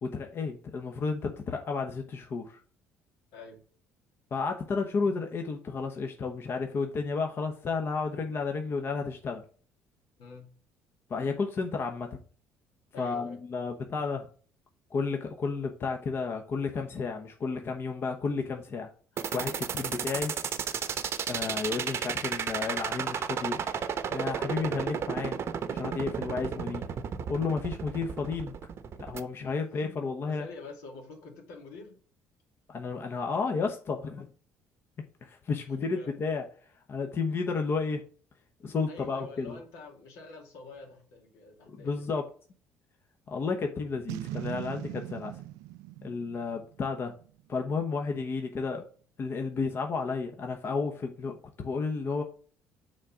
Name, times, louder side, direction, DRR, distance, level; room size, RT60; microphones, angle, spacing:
voice 1, 0.0-2.6 4.3-9.4 11.1-12.2 13.0-14.3 14.9-18.9 19.3-20.4 21.3-23.7 24.1-25.4 25.7-26.9 27.3-28.5 29.0-30.4 32.7-34.3 35.2-36.4 36.9-38.0 38.6-39.6 41.7-42.2 43.3-45.4 46.0-47.1 47.5-48.9 49.2-52.2, left 4 dB, 45° left, 4 dB, 1.0 m, -32 dB
voice 2, 10.2-10.5 12.9-13.4 29.4-30.0 30.2-32.0 35.5-36.2 38.9-42.1 46.3-46.5, left 3 dB, 80° left, 2 dB, 2.4 m, -47 dB
sound 1, 19.2-29.2, right 8 dB, 50° right, 0.8 m, -32 dB
Boom, 44.1-47.4, right 16 dB, 85° right, 0.3 m, -40 dB
6.4 x 3.8 x 6.0 m, 0.42 s
supercardioid pair, 90°, 6 cm